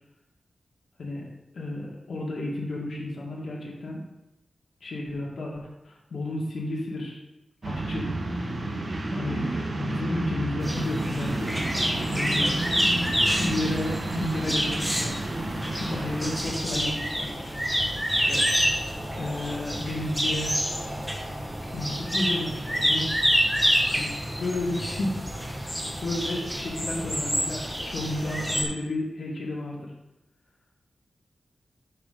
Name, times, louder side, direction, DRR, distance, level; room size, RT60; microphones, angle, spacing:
voice 1, 1.5-4.0 4.8-7.2 7.6-8.1 9.1-11.6 12.1-12.5 13.4-17.5 18.1-18.4 19.2-20.6 21.7-23.1 23.9-25.3 26.0-29.9, left 1 dB, 85° left, -3 dB, 2.0 m, -32 dB
sound 1, 7.6-16.4, right 2 dB, 55° right, 1.7 m, -31 dB
sound 2, 10.6-28.6, equal, ahead, 1.8 m, -28 dB
10.5 x 6.4 x 4.0 m, 0.95 s
wide cardioid pair, 95°, 0 cm